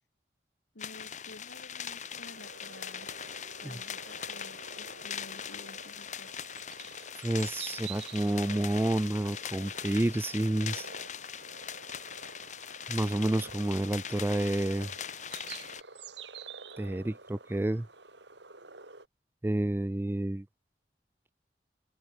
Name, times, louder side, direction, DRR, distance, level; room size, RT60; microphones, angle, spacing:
voice 1, 0.7-3.1 3.6-6.3, left 2 dB, 85° left, 2.4 m, -51 dB
sound 1, 0.8-15.8, left 8 dB, 40° left, 1.6 m, -41 dB
sound 2, 2.1-19.1, right 5 dB, 80° right, 4.1 m, -49 dB
voice 2, 7.2-10.9 12.9-14.9 16.8-17.9 19.4-20.5, right 1 dB, 10° right, 0.3 m, -29 dB
head